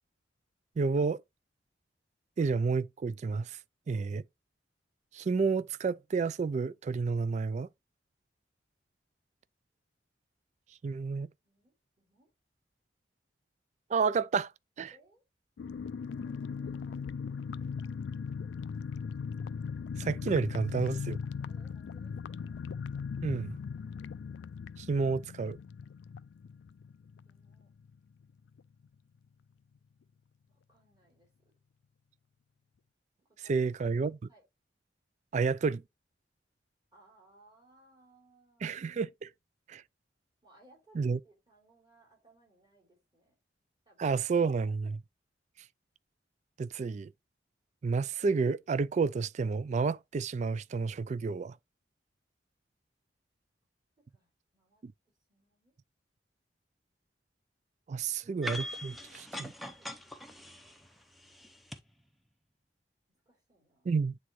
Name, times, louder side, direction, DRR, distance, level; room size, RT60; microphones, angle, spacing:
voice 1, 0.8-1.2 2.4-3.6 3.9-4.2 5.1-7.7 10.8-11.3 13.9-14.5 14.8-14.9 20.0-21.2 23.2-23.6 24.8-25.6 33.5-34.2 35.3-35.8 38.6-39.3 39.7-39.8 40.9-41.2 44.0-44.9 46.6-47.1 47.8-51.6 54.8-54.9 57.9-59.5 63.9-64.2, right 4 dB, 40° right, 0.3 m, -30 dB
voice 2, 11.4-12.3 14.9-15.2 16.0-17.1 21.5-22.7 23.0-23.4 27.2-27.7 30.5-31.5 33.2-33.7 34.3-34.4 36.9-38.8 40.4-43.4 43.9-44.2 44.8-44.9 54.1-54.8 55.3-55.7 57.9-58.5 59.6-60.4 61.1-61.5 63.1-63.9, right 2 dB, 25° right, 3.6 m, -64 dB
sound 1, 15.6-27.9 28.2-28.3 28.6-28.9, left 6 dB, 80° left, 0.3 m, -39 dB
sound 2, 58.4-61.8, equal, ahead, 0.7 m, -42 dB
9.4 x 3.7 x 3.0 m
head